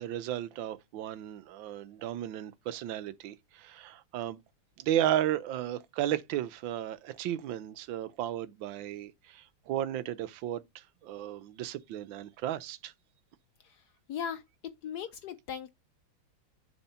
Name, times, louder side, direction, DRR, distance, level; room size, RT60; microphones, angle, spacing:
voice 1, 0.0-4.4 4.8-12.9, right 12 dB, 70° right, 1.2 m, -34 dB
voice 2, 14.1-14.4 14.8-15.7, left 8 dB, 80° left, 0.9 m, -37 dB
7.1 x 3.6 x 5.5 m
omnidirectional pair, 2.4 m